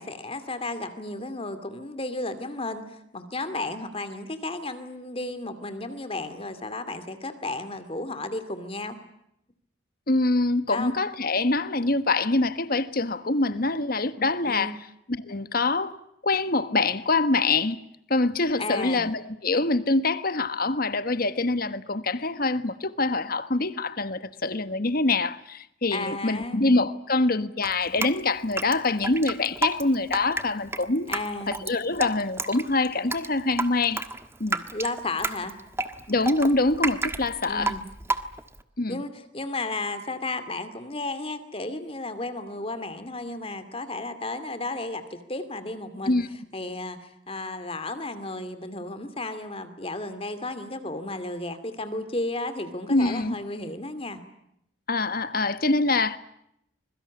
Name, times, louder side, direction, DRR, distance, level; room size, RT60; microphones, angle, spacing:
voice 1, 0.0-9.0 10.7-10.9 14.4-14.8 18.6-19.1 25.9-26.6 31.1-31.6 34.7-35.6 37.5-37.8 38.9-46.2 46.5-54.2, left 2 dB, 30° left, 2.4 m, -33 dB
voice 2, 10.1-14.8 15.1-16.0 16.2-17.8 18.1-31.1 31.5-34.0 34.4-34.6 36.1-37.7 38.8-39.0 46.1-46.3 52.9-53.4 54.9-56.2, left 2 dB, 45° left, 1.4 m, -25 dB
Drip, 27.6-38.6, right 2 dB, 15° right, 1.5 m, -31 dB
25.5 x 23.0 x 8.4 m
head